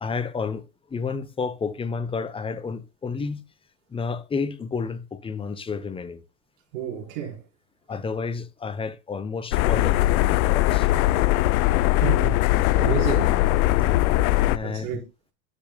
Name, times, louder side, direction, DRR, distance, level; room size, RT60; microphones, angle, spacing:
voice 1, 0.0-0.6 0.9-3.5 3.9-6.2 7.9-10.9 13.7-14.0 14.5-15.0, left 5 dB, 15° left, 0.8 m, -31 dB
voice 2, 6.7-7.4 12.0-12.4 12.8-13.4 14.6-15.0, right 8 dB, 65° right, 4.5 m, -30 dB
sound 1, 9.5-14.6, left 16 dB, 75° left, 0.6 m, -20 dB
11.0 x 7.2 x 2.2 m
supercardioid pair, 120°, 42 cm